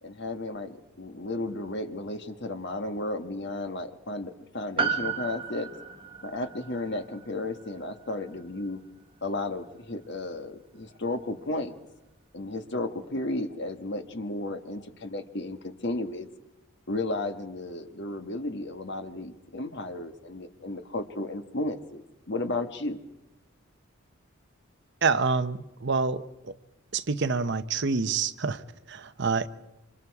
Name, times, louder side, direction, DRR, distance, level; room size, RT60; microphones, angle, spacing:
voice 1, 0.0-5.7 6.2-8.8 9.2-11.7 12.3-16.3 16.9-23.0, left 2 dB, 55° left, 1.5 m, -33 dB
Piano, 4.8-9.4 9.6-9.7, right 6 dB, 25° right, 1.3 m, -34 dB
voice 2, 25.0-26.5 26.9-29.5, right 4 dB, 55° right, 0.9 m, -27 dB
27.5 x 25.5 x 4.8 m
head